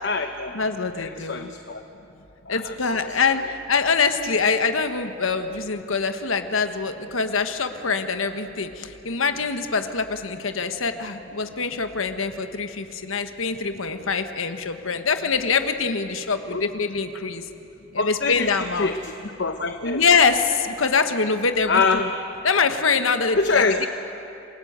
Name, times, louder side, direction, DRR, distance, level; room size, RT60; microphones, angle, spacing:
voice 1, 0.0-0.5 1.0-1.8 2.5-3.2 16.5-16.6 18.0-19.1 19.4-20.0 21.7-22.0 23.3-23.9, left 4 dB, 60° left, 6 dB, 1.0 m, -25 dB
voice 2, 0.5-1.5 2.5-17.4 17.9-18.9 19.8-22.0 22.4-23.6, left 5 dB, 85° left, 8 dB, 1.4 m, -24 dB
28.0 x 21.0 x 8.1 m, 2.9 s
head